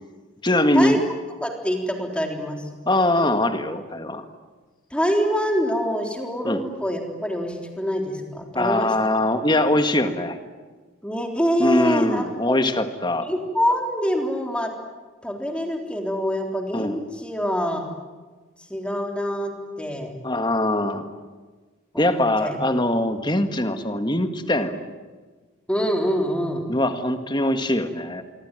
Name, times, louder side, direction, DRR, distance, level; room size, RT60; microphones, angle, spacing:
voice 1, 0.4-1.0 2.9-4.2 6.4-6.6 8.5-10.4 11.6-13.3 16.7-17.0 20.2-21.0 22.0-24.8 26.7-28.2, left 1 dB, 20° left, 8 dB, 1.8 m, -22 dB
voice 2, 1.4-2.7 4.9-8.9 11.0-12.6 13.3-14.7 15.2-17.8 18.6-20.1 21.9-22.6 25.7-26.6, equal, 5° left, 2 dB, 3.7 m, -25 dB
26.0 x 24.5 x 9.2 m, 1.3 s
head